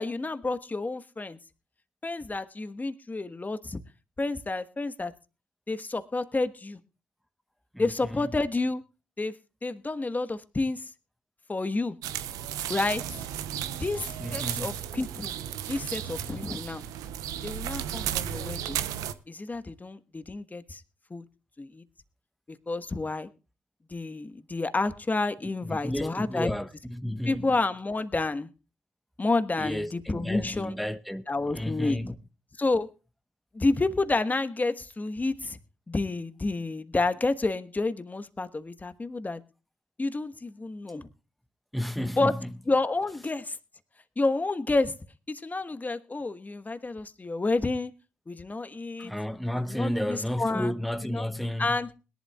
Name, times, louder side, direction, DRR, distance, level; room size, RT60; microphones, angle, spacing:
voice 1, 0.0-1.4 2.0-3.8 4.2-5.1 5.7-6.8 7.8-8.8 9.2-9.3 9.6-10.9 11.5-12.0 12.7-13.3 13.7-15.4 15.7-16.8 17.4-18.8 19.3-20.8 21.1-21.2 21.6-21.8 22.7-23.3 23.9-26.5 27.2-28.5 29.2-30.8 31.3-32.2 32.6-32.9 33.5-35.6 35.9-39.4 40.0-41.1 42.2-42.4 42.7-43.6 44.2-45.0 45.3-47.9 48.3-49.1 49.7-50.7 51.0-51.2 51.6-51.9, left 3 dB, 30° left, 1.3 m, -29 dB
sound 1, 12.0-19.1, right 10 dB, 80° right, 0.7 m, -34 dB
voice 2, 14.2-14.8 25.6-27.5 29.6-31.2 31.5-32.1 41.7-42.5 49.0-51.8, equal, ahead, 1.0 m, -32 dB
21.5 x 11.5 x 2.3 m
hypercardioid pair, 45°, 6 cm